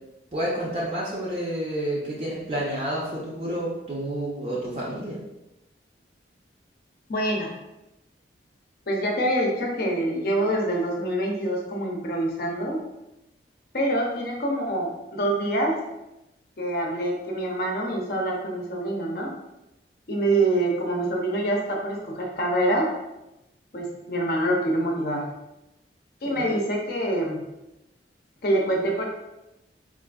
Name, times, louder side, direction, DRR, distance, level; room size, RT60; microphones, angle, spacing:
voice 1, 0.3-5.2 26.2-26.5, right 1 dB, 35° right, -6 dB, 0.5 m, -29 dB
voice 2, 7.1-7.5 8.9-12.8 13.7-15.8 16.6-19.3 20.1-22.9 23.7-25.3 26.2-27.4 28.4-29.1, right 1 dB, 55° left, 0 dB, 0.6 m, -25 dB
3.6 x 2.5 x 2.3 m, 0.93 s
head